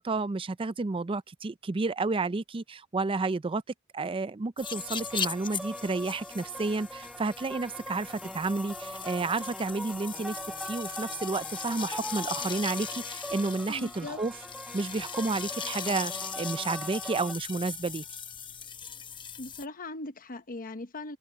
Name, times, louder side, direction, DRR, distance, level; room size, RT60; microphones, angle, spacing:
voice 1, 0.0-3.6 3.9-10.4 10.6-14.3 14.7-18.0, right 3 dB, 25° right, 0.4 m, -31 dB
sound 1, 4.6-19.7, left 7 dB, 25° left, 0.8 m, -39 dB
sound 2, 4.6-17.3, equal, 5° right, 1.0 m, -42 dB
voice 2, 13.7-14.2 19.4-21.2, left 2 dB, 40° left, 1.0 m, -39 dB
head